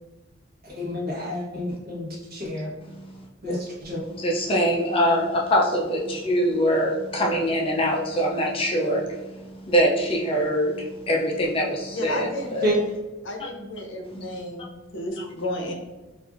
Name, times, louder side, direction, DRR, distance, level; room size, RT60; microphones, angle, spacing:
voice 1, 0.6-2.7 3.4-4.1 12.6-12.8, left 1 dB, 50° right, -4 dB, 1.1 m, -29 dB
voice 2, 4.2-12.7 14.1-14.2, equal, 30° left, -1 dB, 0.4 m, -24 dB
voice 3, 11.9-12.8 13.2-15.7, left 1 dB, 65° left, 2 dB, 0.7 m, -32 dB
4.3 x 2.5 x 2.4 m, 1.1 s
head